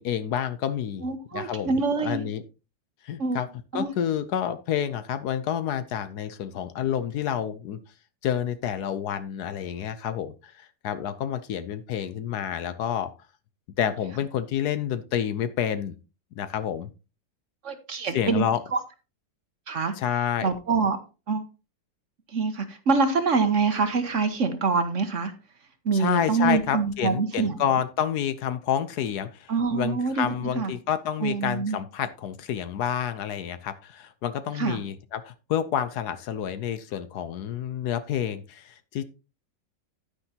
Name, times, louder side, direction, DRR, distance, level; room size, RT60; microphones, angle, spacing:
voice 1, 0.0-1.1 1.3-1.7 2.0-2.4 3.0-3.5 3.7-7.8 8.2-13.1 13.8-16.0 16.4-16.9 18.1-18.6 20.0-20.5 25.9-39.0, left 9 dB, 70° left, 12 dB, 1.2 m, -29 dB
voice 2, 1.0-2.2 3.2-3.4 3.7-3.9 17.6-18.8 19.7-19.9 20.4-21.0 21.3-21.4 22.3-25.3 25.8-27.6 29.5-30.7 31.2-31.8 34.5-34.8, right 4 dB, 50° right, 9 dB, 1.1 m, -25 dB
9.9 x 9.6 x 2.8 m, 0.31 s
omnidirectional pair, 1.9 m